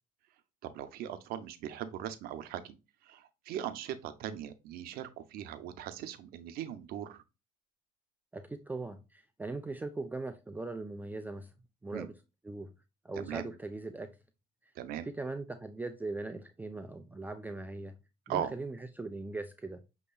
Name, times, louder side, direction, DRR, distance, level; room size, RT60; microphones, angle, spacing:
voice 1, 0.6-2.8 3.0-7.2 11.9-12.1 13.2-13.5 14.7-15.1 18.3-18.5, right 10 dB, 70° right, 0.7 m, -39 dB
voice 2, 8.3-11.5 11.8-12.1 12.4-12.7 13.0-14.1 15.0-18.0 18.3-19.8, right 2 dB, 10° right, 0.4 m, -40 dB
6.5 x 2.9 x 2.3 m
supercardioid pair, 85°, 16 cm